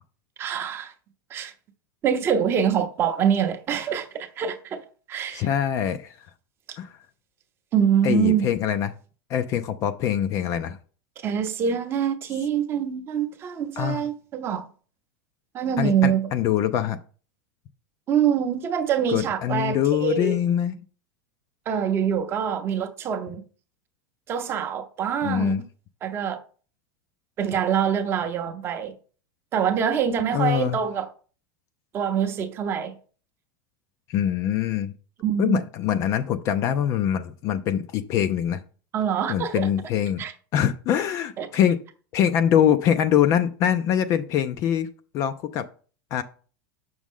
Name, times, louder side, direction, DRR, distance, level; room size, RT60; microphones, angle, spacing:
voice 1, 0.4-0.9 1.3-1.5 2.0-5.5 6.7-6.8 7.7-8.5 11.2-14.6 15.5-16.2 18.1-20.4 21.7-23.4 24.3-25.5 26.0-26.4 27.4-28.9 29.5-31.1 31.9-32.9 35.2-35.6 38.9-39.7 40.2-40.3 41.4-41.5, right 8 dB, 25° right, 0.7 m, -25 dB
voice 2, 5.3-6.2 6.8-6.9 8.0-8.9 9.3-10.8 13.8-14.0 15.8-17.0 19.1-20.8 25.2-25.6 30.3-30.8 34.1-34.9 35.4-38.6 39.3-40.2 40.5-41.8 42.1-44.9 45.1-45.6 46.1-46.2, left 9 dB, 30° left, 0.4 m, -23 dB
7.3 x 6.2 x 3.6 m
supercardioid pair, 165°, 10 cm